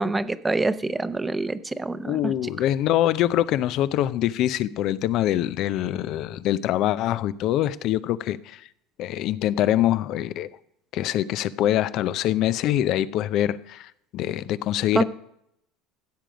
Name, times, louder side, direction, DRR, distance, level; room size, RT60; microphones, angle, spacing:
voice 1, 0.0-2.3 14.9-15.0, right 2 dB, 15° right, 0.7 m, -26 dB
voice 2, 2.1-8.6 9.0-10.5 10.9-15.0, left 12 dB, 60° left, 0.6 m, -24 dB
15.0 x 7.7 x 5.1 m
supercardioid pair, 100°, 0 cm